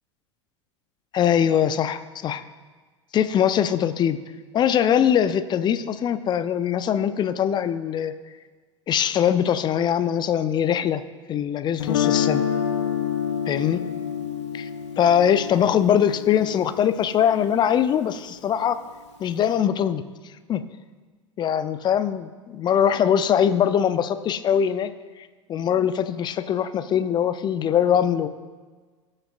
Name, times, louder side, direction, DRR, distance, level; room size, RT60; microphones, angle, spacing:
voice 1, 1.1-2.4 3.1-4.2 4.5-8.1 8.9-11.0 11.3-12.4 13.5-13.8 14.5-14.7 15.0-18.8 19.2-20.0 20.5-20.6 21.4-24.9 25.5-28.3, left 9 dB, 30° left, 12 dB, 0.6 m, -22 dB
Guitar, 11.8-17.8, left 9 dB, 70° left, 0.8 m, -28 dB
17.0 x 6.5 x 2.5 m, 1.4 s
figure-of-eight pair, 85°, 16 cm